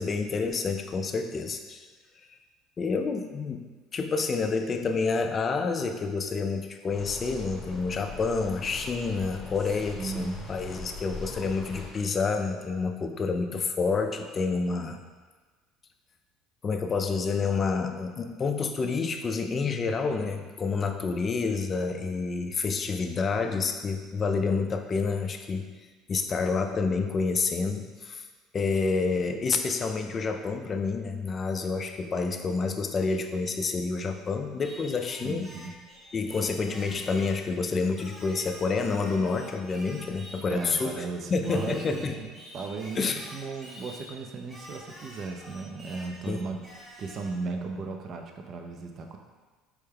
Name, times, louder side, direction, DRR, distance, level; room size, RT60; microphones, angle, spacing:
voice 1, 0.0-1.9 2.8-15.0 16.6-25.7 26.1-28.3 28.5-35.6 36.1-42.2 43.0-43.3 46.3-46.4, left 4 dB, 30° left, 6 dB, 0.3 m, -28 dB
sound 1, 6.9-11.9, left 3 dB, 15° left, 0.9 m, -41 dB
voice 2, 9.9-10.5 35.2-35.7 40.5-42.3 42.5-49.2, right 4 dB, 45° right, 3 dB, 0.4 m, -36 dB
Singing, 34.6-37.5 38.0-41.0 41.4-44.1 44.5-47.4, equal, 15° right, 0.9 m, -47 dB
4.5 x 2.2 x 3.3 m, 1.4 s
supercardioid pair, 115°, 0 cm